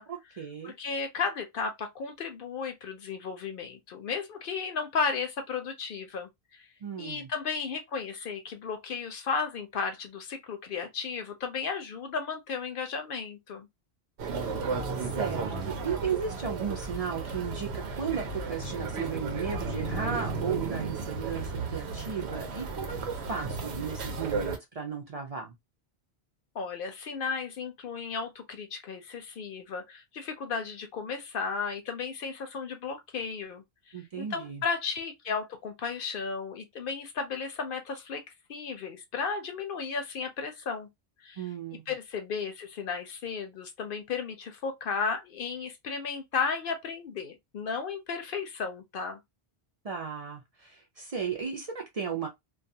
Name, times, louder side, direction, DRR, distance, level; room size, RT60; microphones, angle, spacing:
voice 1, 0.1-0.7 6.8-7.3 15.0-25.5 33.9-34.6 41.4-41.8 49.8-52.3, right 6 dB, 45° right, 0.5 m, -35 dB
voice 2, 0.6-6.7 7.0-13.7 26.5-38.2 38.5-40.9 41.2-41.5 41.9-49.2, left 5 dB, 65° left, 0.7 m, -34 dB
sound 1, 14.2-24.6, right 4 dB, 85° right, 0.9 m, -34 dB
2.3 x 2.3 x 2.6 m
omnidirectional pair, 1.1 m